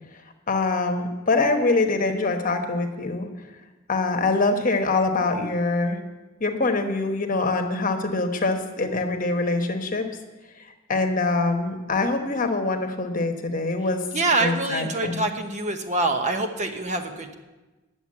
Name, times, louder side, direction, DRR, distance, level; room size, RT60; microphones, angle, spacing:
voice 1, 0.5-3.3 3.9-6.0 6.4-10.1 10.6-14.0 14.4-15.3, left 3 dB, 40° left, 5 dB, 1.1 m, -24 dB
voice 2, 14.1-17.3, right 2 dB, 35° right, 5 dB, 1.0 m, -25 dB
9.9 x 7.0 x 8.6 m, 1.2 s
head